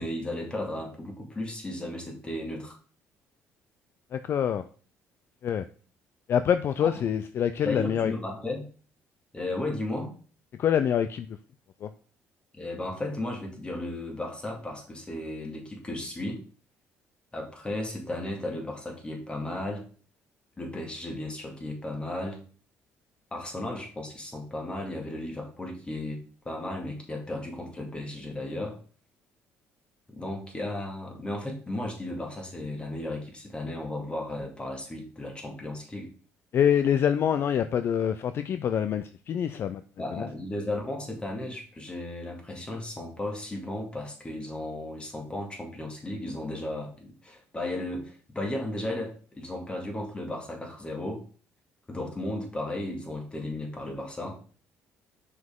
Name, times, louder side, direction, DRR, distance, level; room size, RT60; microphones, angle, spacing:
voice 1, 0.0-2.8 7.6-8.6 9.3-10.2 12.5-16.4 17.3-19.9 20.6-22.4 23.3-28.8 30.1-36.1 40.0-51.2 51.9-54.4, left 1 dB, 20° left, 2 dB, 2.2 m, -35 dB
voice 2, 4.1-4.6 5.4-5.6 6.3-8.1 10.6-11.3 11.8-11.9 36.5-39.8 40.2-40.3, left 8 dB, 50° left, 11 dB, 0.4 m, -25 dB
6.0 x 5.3 x 3.7 m, 0.40 s
cardioid pair, 100°, 5 cm